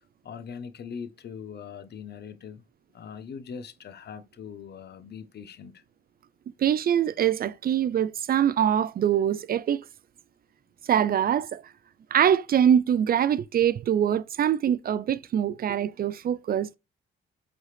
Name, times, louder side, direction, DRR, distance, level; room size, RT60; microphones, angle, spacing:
voice 1, 0.0-2.6 2.9-5.8, left 6 dB, 55° left, 1.1 m, -41 dB
voice 2, 6.6-9.9 10.8-11.7 12.1-16.8, right 9 dB, 50° right, 0.4 m, -24 dB
7.9 x 4.0 x 3.3 m
cardioid pair, 90°, 20 cm